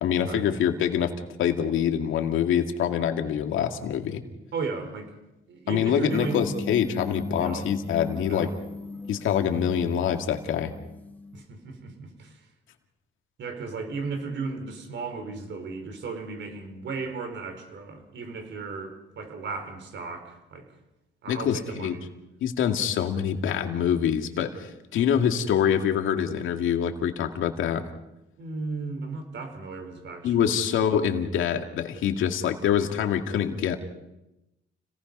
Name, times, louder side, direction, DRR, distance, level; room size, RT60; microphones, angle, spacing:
voice 1, 0.0-1.1 1.4-4.2 5.7-8.5 9.1-10.7 21.3-21.9 22.4-27.8 30.2-33.8, left 8 dB, 80° left, 5 dB, 2.3 m, -25 dB
voice 2, 4.5-5.1 5.5-6.5 7.4-7.7 8.3-8.6 11.3-12.5 13.4-20.7 21.2-22.1 28.4-30.6, right 4 dB, 65° right, 6 dB, 4.7 m, -35 dB
sound 1, 6.1-11.4, left 3 dB, 10° left, 2.2 m, -38 dB
29.5 x 19.0 x 5.5 m, 0.94 s
cardioid pair, 90°, 20 cm